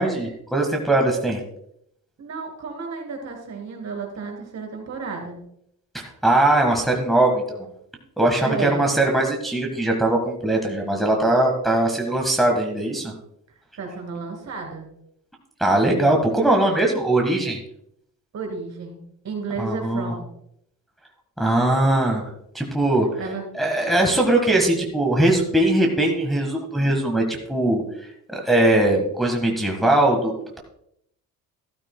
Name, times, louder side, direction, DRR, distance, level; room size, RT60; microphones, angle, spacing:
voice 1, 0.0-1.4 5.9-7.7 8.2-13.1 15.6-17.6 19.6-20.1 21.4-22.3 22.5-23.1 23.5-27.8 28.3-30.6, right 1 dB, ahead, 0 dB, 1.5 m, -20 dB
voice 2, 2.2-5.4 8.4-8.9 13.8-14.9 18.3-19.0 19.2-20.3 23.2-23.4 23.8-23.9, right 4 dB, 50° right, 2 dB, 3.6 m, -32 dB
13.5 x 12.5 x 2.2 m, 0.74 s
cardioid pair, 110°, 34 cm